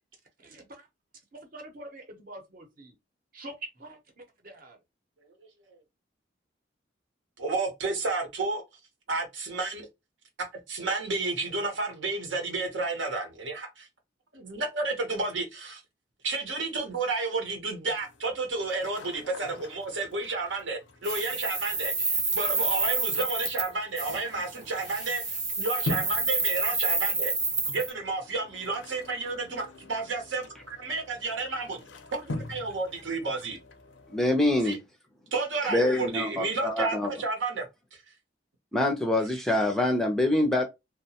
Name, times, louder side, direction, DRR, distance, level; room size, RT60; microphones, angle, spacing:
voice 1, 0.4-0.9 1.3-2.9 3.3-4.8, right 1 dB, 50° right, 0.8 m, -45 dB
voice 2, 7.4-8.6 9.1-9.9 10.7-13.9 14.3-15.8 16.2-27.3 27.7-31.8 32.2-33.6 34.6-34.8 35.3-37.7, right 3 dB, 85° right, 0.9 m, -31 dB
sound 1, 17.9-34.8, left 2 dB, 90° left, 0.5 m, -44 dB
sound 2, 21.0-23.7 24.0-24.2 24.8-27.9, right 3 dB, 20° right, 0.9 m, -29 dB
voice 3, 34.1-34.8 35.6-37.1 38.7-40.6, left 1 dB, ahead, 0.4 m, -25 dB
2.8 x 2.1 x 2.8 m
head